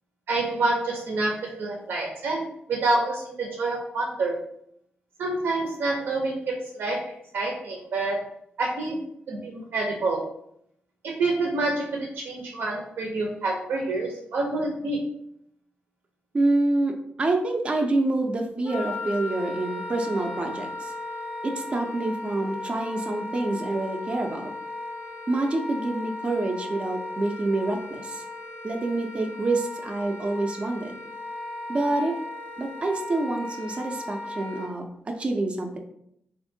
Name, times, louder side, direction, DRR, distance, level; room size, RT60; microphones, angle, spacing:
voice 1, 0.3-4.4 5.2-8.2 8.6-9.0 9.3-10.3 11.0-15.0, right 2 dB, 80° right, 0 dB, 0.5 m, -27 dB
voice 2, 16.3-16.9 17.2-20.9 21.4-24.5 25.3-28.2 28.6-31.0 31.7-32.2 32.6-35.8, right 2 dB, 30° right, 2 dB, 0.4 m, -27 dB
Wind instrument woodwind instrument, 18.6-34.7, left 2 dB, 70° left, 0.5 m, -36 dB
3.5 x 2.5 x 2.6 m, 0.73 s
cardioid pair, 95°, 4 cm